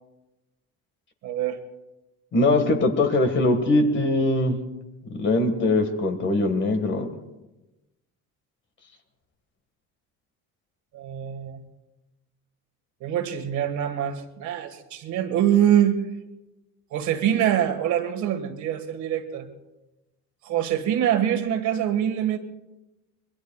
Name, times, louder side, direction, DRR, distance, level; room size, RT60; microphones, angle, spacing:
voice 1, 1.2-1.6 10.9-11.6 13.0-16.0 16.9-19.5 20.4-22.4, right 10 dB, 60° right, 7 dB, 1.7 m, -24 dB
voice 2, 2.3-4.6 5.1-7.1, left 2 dB, 35° left, 6 dB, 1.8 m, -21 dB
25.5 x 22.0 x 2.4 m, 1.0 s
cardioid pair, 155°, 33 cm